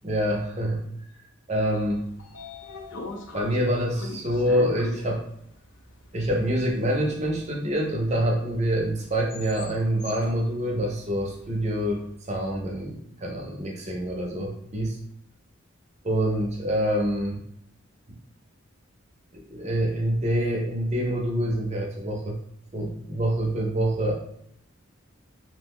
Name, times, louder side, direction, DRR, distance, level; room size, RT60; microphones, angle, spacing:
voice 1, 0.0-0.8 1.5-2.0 3.3-5.2 6.1-15.0 16.0-17.4 19.5-22.4 22.7-24.1, equal, 35° right, 0 dB, 0.6 m, -26 dB
Train / Sliding door, 1.8-11.9, left 2 dB, 70° left, 0.5 m, -42 dB
2.9 x 2.0 x 3.5 m, 0.72 s
head